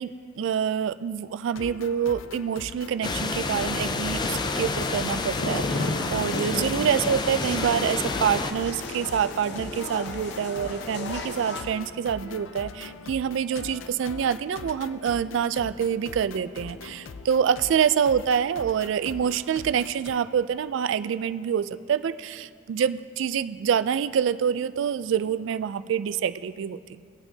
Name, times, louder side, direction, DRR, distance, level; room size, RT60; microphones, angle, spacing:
voice 1, 0.0-27.0, right 8 dB, 70° right, 14 dB, 0.3 m, -26 dB
sound 1, 1.5-20.1, left 4 dB, 90° left, 0.5 m, -42 dB
sound 2, 3.0-8.5, left 3 dB, 25° left, 0.4 m, -29 dB
sound 3, 4.2-11.6, left 2 dB, 65° left, 0.8 m, -34 dB
19.5 x 8.7 x 2.7 m, 2.3 s
head